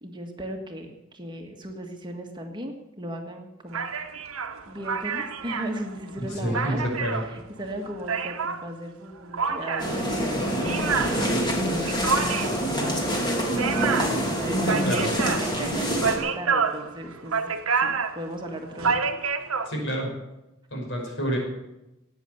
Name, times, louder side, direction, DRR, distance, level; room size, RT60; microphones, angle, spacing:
voice 1, 0.0-3.9 4.7-11.4 11.7-13.5 14.3-17.5 17.8-19.0, equal, 20° right, 3 dB, 1.6 m, -37 dB
sound 1, 3.7-8.7 9.3-19.7, right 5 dB, 90° right, 1.1 m, -28 dB
voice 2, 6.2-7.2 11.1-11.4 14.6-15.1 19.7-20.1 20.7-21.4, equal, 60° left, 1 dB, 5.5 m, -28 dB
sound 2, 9.8-16.2, equal, 20° left, 2.9 m, -26 dB
16.5 x 9.2 x 8.0 m, 0.95 s
head